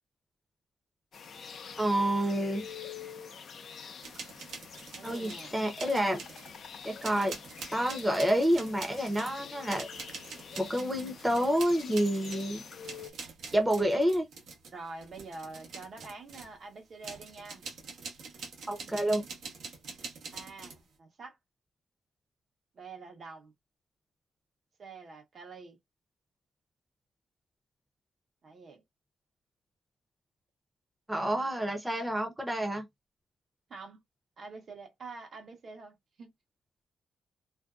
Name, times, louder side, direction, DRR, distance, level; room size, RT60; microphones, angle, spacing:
sound 1, 1.1-13.1, left 6 dB, 60° left, 0.4 m, -46 dB
voice 1, 1.8-2.6 5.0-6.2 6.8-7.3 7.7-9.9 10.6-12.6 13.5-14.3 18.7-19.2 31.1-32.9, equal, 10° right, 0.7 m, -28 dB
sound 2, 4.0-5.5 5.8-6.6 7.0-16.6 17.0-20.8, right 4 dB, 80° right, 0.9 m, -45 dB
voice 2, 4.9-5.6 14.7-17.7 20.3-21.4 22.7-23.5 24.8-25.8 28.4-28.8 33.7-34.0 34.4-36.3, right 3 dB, 55° right, 0.9 m, -46 dB
2.6 x 2.1 x 2.3 m
cardioid pair, 95°, 0 cm